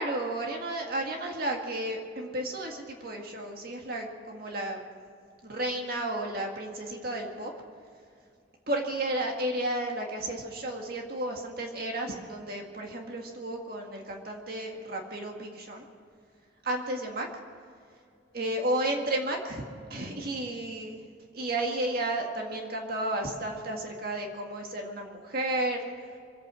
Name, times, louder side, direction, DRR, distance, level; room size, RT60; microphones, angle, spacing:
voice 1, 0.0-4.8 5.4-7.5 8.7-15.9 16.6-17.3 18.3-21.0 21.3-25.8, right 1 dB, 50° right, 1 dB, 1.9 m, -32 dB
25.0 x 8.9 x 6.2 m, 2.3 s
head